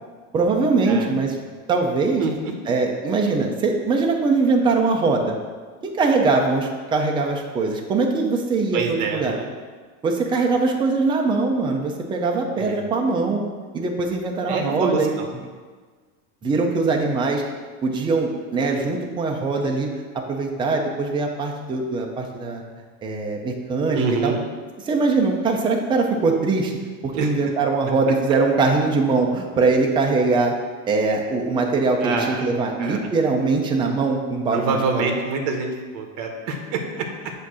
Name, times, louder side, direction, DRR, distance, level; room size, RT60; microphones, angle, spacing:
voice 1, 0.3-1.4 1.7-2.2 2.7-5.4 5.8-9.4 10.0-13.4 13.7-15.1 16.4-17.4 17.8-19.9 20.1-22.6 23.0-24.3 24.9-26.7 27.0-30.5 30.9-35.1, right 3 dB, 10° right, 1 dB, 0.5 m, -22 dB
voice 2, 0.9-1.2 2.2-2.5 8.7-9.5 12.6-12.9 14.5-15.3 23.9-24.4 27.1-27.3 32.0-32.5 32.8-33.0 34.5-37.3, right 4 dB, 45° right, 3 dB, 1.1 m, -26 dB
8.3 x 2.8 x 6.1 m, 1.5 s
supercardioid pair, 150°, 41 cm